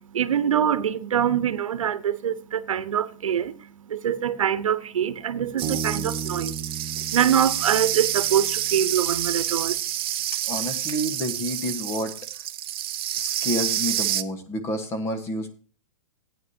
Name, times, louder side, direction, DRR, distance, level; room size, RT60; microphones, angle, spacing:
voice 1, 0.0-6.5 7.1-9.8, right 9 dB, 85° right, 1.2 m, -24 dB
Bass guitar, 5.6-9.1, right 6 dB, 20° right, 1.7 m, -35 dB
sound 1, 5.6-14.2, right 12 dB, 45° right, 0.8 m, -28 dB
voice 2, 10.5-12.5 13.1-15.5, equal, 15° left, 1.3 m, -29 dB
15.5 x 9.6 x 2.8 m
hypercardioid pair, 165°, 17 cm